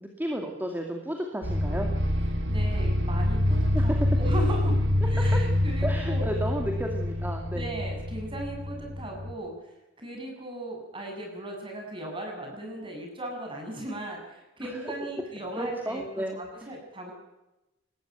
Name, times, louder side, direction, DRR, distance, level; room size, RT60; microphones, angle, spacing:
voice 1, 0.0-1.9 3.7-4.0 5.2-5.4 5.8-7.8 14.6-14.8 15.6-16.7, right 1 dB, 10° right, 2 dB, 2.3 m, -33 dB
sound 1, 1.4-9.3, left 1 dB, 70° right, 3.0 m, -26 dB
voice 2, 2.5-4.7 5.0-6.2 6.6-6.7 7.5-9.5 10.0-17.1, right 1 dB, 25° right, 2 dB, 7.3 m, -37 dB
20.0 x 14.5 x 9.4 m, 0.99 s
head